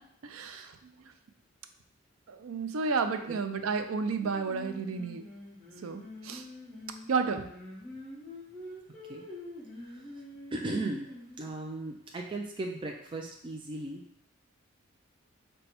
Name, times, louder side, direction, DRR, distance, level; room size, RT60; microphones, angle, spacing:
voice 1, 0.2-0.7 2.3-5.2 5.8-6.4 7.1-7.5, right 4 dB, 90° right, 8 dB, 0.4 m, -31 dB
Singing, 4.2-11.5, left 1 dB, 5° left, 1.6 m, -46 dB
voice 2, 9.8-10.1 10.5-14.0, right 2 dB, 25° right, 1 dB, 0.3 m, -37 dB
5.3 x 2.2 x 4.2 m, 0.72 s
head